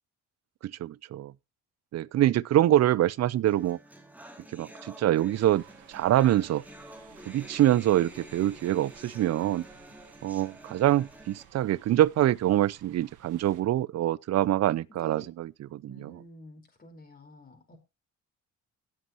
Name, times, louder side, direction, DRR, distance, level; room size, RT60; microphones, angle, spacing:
voice 1, 0.6-1.3 1.9-3.8 4.5-5.6 5.9-6.6 7.3-9.7 10.2-16.1, right 13 dB, 60° right, 0.5 m, -25 dB
sound 1, 3.4-11.4, right 1 dB, 5° right, 2.7 m, -49 dB
sound 2, 5.3-13.6, right 10 dB, 90° right, 1.5 m, -55 dB
voice 2, 14.9-15.3 15.9-17.8, equal, 30° left, 4.5 m, -50 dB
18.0 x 7.7 x 3.0 m
cardioid pair, 90°, 30 cm